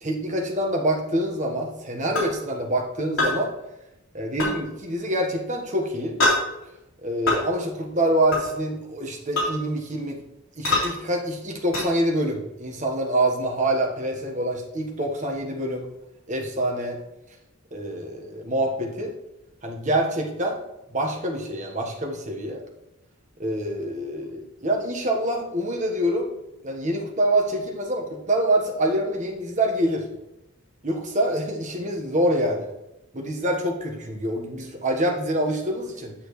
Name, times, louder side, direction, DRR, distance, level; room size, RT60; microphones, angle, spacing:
voice 1, 0.0-3.5 4.1-6.2 7.0-10.2 10.5-15.8 16.3-17.0 17.7-19.1 19.6-20.6 20.9-22.6 23.4-26.3 26.6-30.1 30.8-32.7 33.1-36.1, right 1 dB, 35° right, 1 dB, 1.3 m, -26 dB
sound 1, 2.2-2.3 3.2-3.4 4.4-4.5 6.2-6.4 7.3-7.4 8.3-8.5 9.4-9.5 10.6-10.9 11.7-11.9, left 2 dB, 70° left, 3.4 m, -22 dB
8.6 x 7.7 x 3.2 m, 0.91 s
head